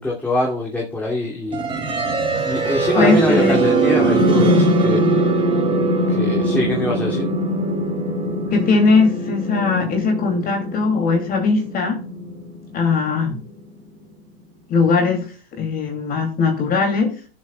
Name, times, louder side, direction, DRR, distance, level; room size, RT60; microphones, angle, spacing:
voice 1, 0.0-1.6 2.4-5.1 6.1-7.3, left 2 dB, 5° left, -3 dB, 2.5 m, -24 dB
sound 1, 1.5-13.4, right 1 dB, 15° right, 3.4 m, -21 dB
voice 2, 3.0-3.7 8.5-12.0 12.7-13.4 14.7-17.2, left 4 dB, 30° left, 3 dB, 2.6 m, -19 dB
17.5 x 7.4 x 2.3 m, 0.37 s
supercardioid pair, 135°, 31 cm